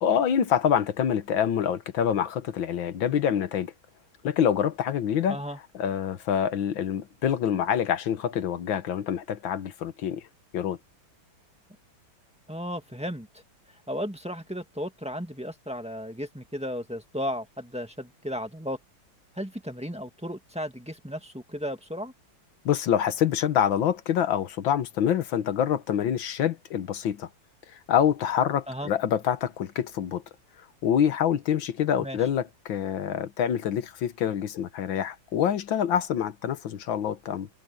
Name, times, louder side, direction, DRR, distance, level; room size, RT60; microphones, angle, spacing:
voice 1, 0.0-3.7 4.2-5.4 5.7-10.3 10.5-10.8 22.7-27.3 27.7-30.2 30.8-37.5, left 9 dB, 80° left, 1.9 m, -26 dB
voice 2, 12.5-13.3 13.9-18.8 19.4-22.1 28.7-28.9 32.0-32.2, equal, 5° right, 1.7 m, -34 dB
omnidirectional pair, 2.1 m